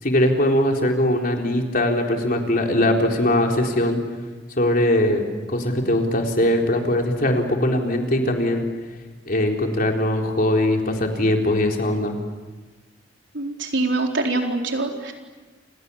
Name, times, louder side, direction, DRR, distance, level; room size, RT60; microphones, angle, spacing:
voice 1, 0.0-4.0 4.6-5.2 5.5-8.7 9.3-12.2, left 1 dB, 50° left, 2 dB, 4.0 m, -21 dB
voice 2, 13.3-15.1, right 2 dB, 80° right, 2 dB, 4.3 m, -24 dB
29.5 x 28.0 x 7.2 m, 1.2 s
head